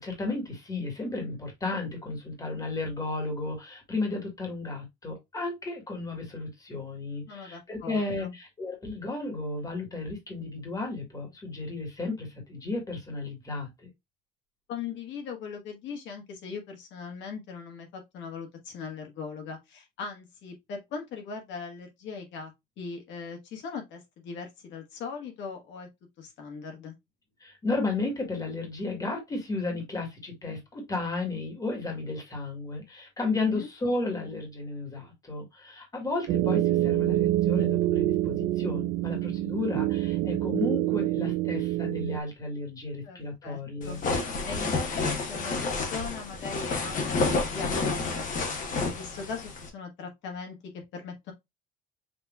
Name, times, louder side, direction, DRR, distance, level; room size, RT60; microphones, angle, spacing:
voice 1, 0.0-13.9 27.4-44.0, left 3 dB, 15° left, 1.8 m, -33 dB
voice 2, 7.3-8.4 14.7-25.9 26.2-27.0 33.4-33.7 43.0-44.0 44.4-51.3, left 5 dB, 65° left, 1.5 m, -40 dB
sound 1, 36.3-42.2, right 15 dB, 65° right, 0.6 m, -26 dB
sound 2, 43.8-49.7, left 3 dB, 40° left, 1.3 m, -30 dB
5.9 x 3.0 x 2.3 m
cardioid pair, 145°, 20 cm